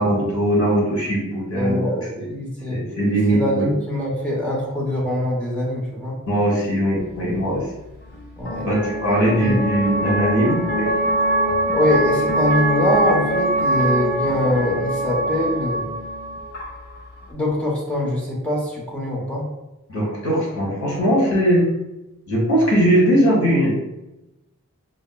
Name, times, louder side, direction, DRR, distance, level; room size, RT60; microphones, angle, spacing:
voice 1, 0.0-1.9 2.1-2.3 2.7-3.7 6.3-7.6 8.6-10.9 19.9-21.6 22.3-23.8, right 1 dB, 65° left, -4 dB, 1.2 m, -20 dB
voice 2, 1.5-2.0 2.3-2.8 3.3-6.1 8.4-8.7 9.4-9.6 11.7-15.9 17.3-19.5, left 1 dB, 5° left, -4 dB, 0.7 m, -23 dB
sound 1, 7.0-17.3, right 1 dB, 45° left, 0.6 m, -24 dB
5.1 x 2.1 x 2.2 m, 0.97 s
head